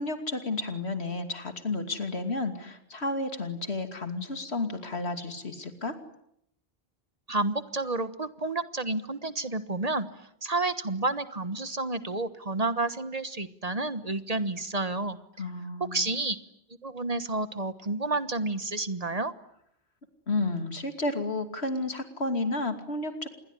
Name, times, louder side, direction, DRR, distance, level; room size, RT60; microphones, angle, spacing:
voice 1, 0.0-5.9 15.4-16.1 20.3-23.3, left 2 dB, 85° left, 7 dB, 3.0 m, -31 dB
voice 2, 7.3-10.1 10.4-15.2 15.8-16.4 16.8-19.3, right 2 dB, 40° right, 12 dB, 1.3 m, -30 dB
27.5 x 21.5 x 9.9 m, 0.75 s
omnidirectional pair, 1.1 m